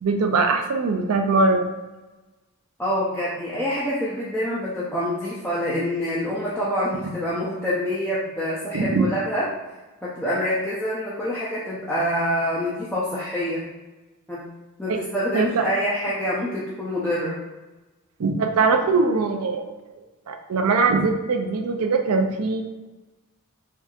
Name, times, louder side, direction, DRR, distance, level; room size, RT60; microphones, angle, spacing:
voice 1, 0.0-1.7 8.7-9.1 15.3-15.7 18.2-22.6, right 4 dB, 80° right, 5 dB, 0.5 m, -22 dB
voice 2, 2.8-9.5 10.0-13.7 14.3-14.5 14.8-17.4, equal, 5° left, -10 dB, 0.5 m, -26 dB
4.5 x 2.6 x 2.4 m, 1.1 s
head